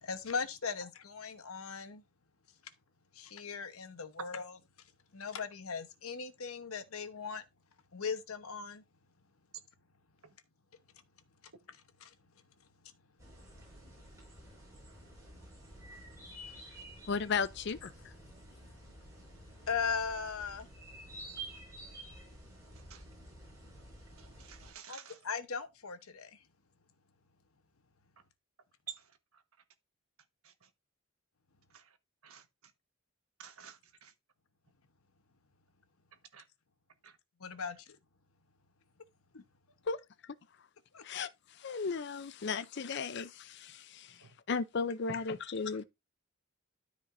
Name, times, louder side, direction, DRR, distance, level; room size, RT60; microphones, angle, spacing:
voice 1, 0.0-2.0 3.1-4.6 5.1-7.4 7.9-8.8 11.7-12.1 17.8-17.9 19.7-20.7 24.9-26.4 37.4-37.8 39.3-39.4 40.9-41.0, left 5 dB, 85° left, 1.0 m, -38 dB
sound 1, 13.2-24.7, right 1 dB, 15° right, 5.1 m, -51 dB
voice 2, 17.1-18.1 39.9-40.0 40.2-40.4 41.0-45.8, left 5 dB, 55° left, 0.5 m, -36 dB
voice 3, 24.2-25.2 28.9-29.0 31.7-31.8 32.2-32.4 33.4-34.1 36.3-36.4 37.0-37.1 44.2-44.3, right 8 dB, 85° right, 1.4 m, -50 dB
13.0 x 5.1 x 2.6 m
head